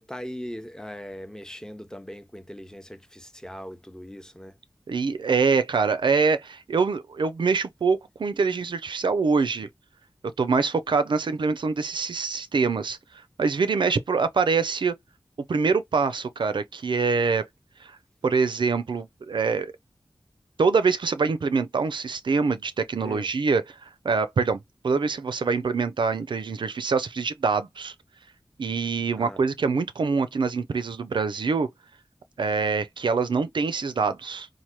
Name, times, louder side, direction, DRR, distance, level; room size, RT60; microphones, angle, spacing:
voice 1, 0.0-4.5 23.0-23.3 29.2-29.4, equal, 10° left, 0.6 m, -39 dB
voice 2, 4.9-9.7 10.4-13.0 13.4-14.9 15.5-17.4 17.8-17.9 18.2-19.7 20.6-23.8 24.0-27.9 28.6-31.7 32.4-34.5, right 4 dB, 75° right, 0.4 m, -24 dB
3.2 x 2.1 x 2.8 m
cardioid pair, 40°, 8 cm